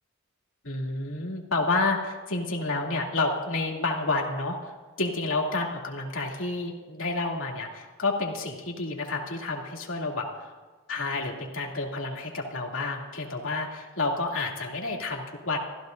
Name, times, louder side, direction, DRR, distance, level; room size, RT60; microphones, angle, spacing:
voice 1, 0.6-10.5 10.9-15.6, left 3 dB, 75° left, -1 dB, 2.7 m, -30 dB
25.5 x 15.5 x 2.6 m, 1.4 s
head